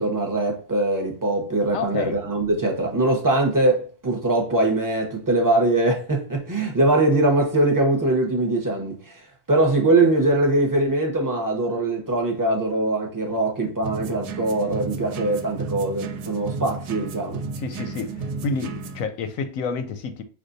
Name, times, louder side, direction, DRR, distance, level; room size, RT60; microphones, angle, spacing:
voice 1, 0.0-17.4, right 2 dB, 20° right, 0.6 m, -22 dB
voice 2, 1.7-2.2 17.6-20.2, left 5 dB, 70° left, 0.9 m, -29 dB
sound 1, 13.8-19.1, right 4 dB, 85° right, 1.1 m, -33 dB
6.2 x 2.4 x 2.6 m
omnidirectional pair, 1.7 m